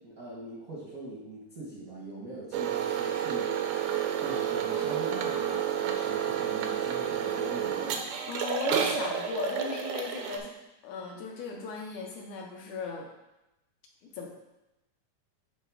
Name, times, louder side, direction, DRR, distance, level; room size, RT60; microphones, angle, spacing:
voice 1, 0.0-3.5 4.2-7.9, right 1 dB, 55° right, -6 dB, 0.9 m, -41 dB
sound 1, 2.5-10.4, right 9 dB, 75° right, 1.8 m, -30 dB
voice 2, 8.3-10.6 10.8-13.1 14.0-14.3, left 5 dB, 75° left, 0 dB, 2.0 m, -37 dB
9.0 x 3.3 x 4.7 m, 0.94 s
omnidirectional pair, 3.7 m